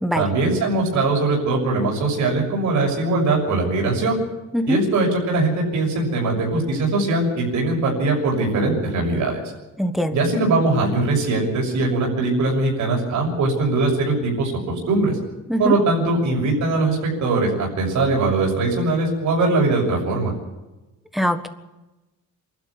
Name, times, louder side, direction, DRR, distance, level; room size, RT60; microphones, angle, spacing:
voice 1, 0.1-4.2 4.7-9.4 10.1-15.2 15.6-20.3, right 2 dB, 60° right, -1 dB, 6.7 m, -21 dB
voice 2, 9.8-10.2 15.5-15.7 21.1-21.5, equal, ahead, 9 dB, 1.5 m, -22 dB
27.5 x 12.5 x 8.7 m, 1.1 s
cardioid pair, 165°, 33 cm